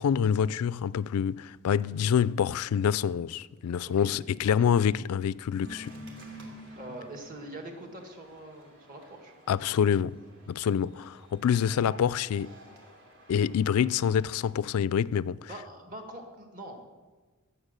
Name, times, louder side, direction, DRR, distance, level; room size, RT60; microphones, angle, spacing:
voice 1, 0.0-5.9 9.5-10.2 10.5-12.6 13.3-15.5, left 8 dB, 75° left, 0.3 m, -26 dB
voice 2, 3.9-4.2 4.6-4.7 6.8-9.3 11.7-11.9 12.7-12.8 15.5-16.9, right 1 dB, 40° right, 1.7 m, -44 dB
sound 1, 5.6-14.5, equal, 65° right, 2.7 m, -50 dB
16.5 x 7.0 x 6.6 m
head